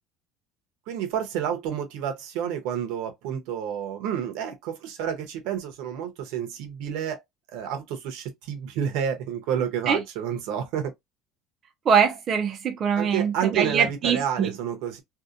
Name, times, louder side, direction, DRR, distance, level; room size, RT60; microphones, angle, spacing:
voice 1, 0.9-7.2 7.5-10.9 12.9-15.0, right 8 dB, 70° right, 0.8 m, -29 dB
voice 2, 11.9-14.5, right 7 dB, 30° right, 0.4 m, -23 dB
2.7 x 2.1 x 2.4 m
cardioid pair, 165°, 0 cm